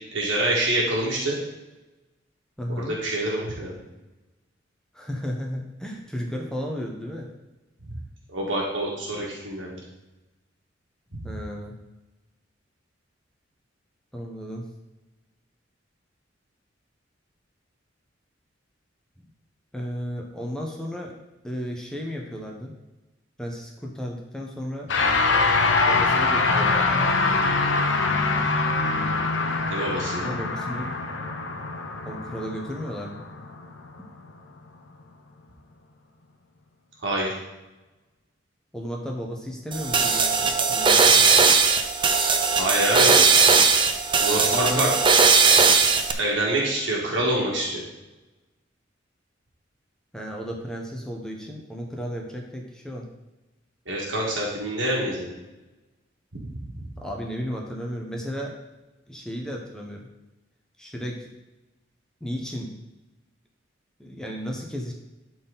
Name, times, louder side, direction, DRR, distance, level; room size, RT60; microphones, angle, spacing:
voice 1, 0.1-1.4 2.9-3.8 7.9-8.0 8.3-9.8 29.7-30.3 37.0-37.4 42.5-43.2 44.2-44.9 46.2-47.8 53.9-55.3 56.3-56.8, right 1 dB, 80° right, -4 dB, 1.9 m, -26 dB
voice 2, 2.6-2.9 4.9-7.3 11.2-11.7 14.1-14.6 19.2-19.3 19.7-21.1 21.4-22.7 23.4-24.9 25.8-27.0 30.2-30.9 32.0-33.2 38.7-41.2 44.3-44.9 50.1-53.1 57.0-58.5 59.1-60.1 60.8-61.3 62.2-62.7 64.0-64.9, equal, 5° left, 0 dB, 1.1 m, -33 dB
sound 1, 24.9-34.4, left 3 dB, 85° left, 1.0 m, -24 dB
sound 2, 39.7-46.1, right 5 dB, 25° right, 0.6 m, -18 dB
11.5 x 4.3 x 4.1 m, 1.1 s
head